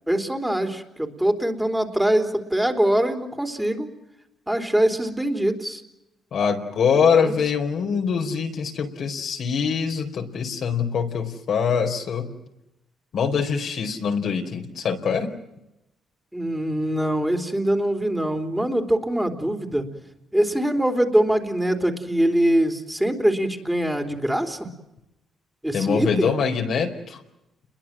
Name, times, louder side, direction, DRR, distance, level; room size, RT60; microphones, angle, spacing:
voice 1, 0.1-3.9 4.5-5.8 7.1-7.4 16.3-19.9 20.3-24.7 25.6-26.4, right 1 dB, 5° right, 6 dB, 3.7 m, -23 dB
voice 2, 6.3-12.3 13.1-15.3 25.7-27.2, left 6 dB, 65° left, 3 dB, 4.6 m, -23 dB
29.5 x 22.5 x 7.6 m, 0.89 s
cardioid pair, 90°, 0 cm